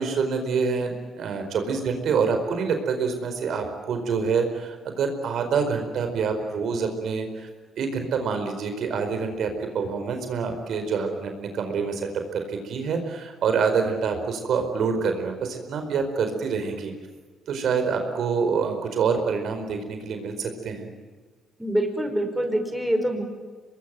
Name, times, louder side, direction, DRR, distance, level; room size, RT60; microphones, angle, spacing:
voice 1, 0.0-7.5 7.8-16.9 17.5-20.9, right 5 dB, 70° right, 6 dB, 4.7 m, -26 dB
voice 2, 21.6-23.2, right 1 dB, 5° right, 5 dB, 5.0 m, -25 dB
25.0 x 21.5 x 9.2 m, 1.4 s
cardioid pair, 90°, 0 cm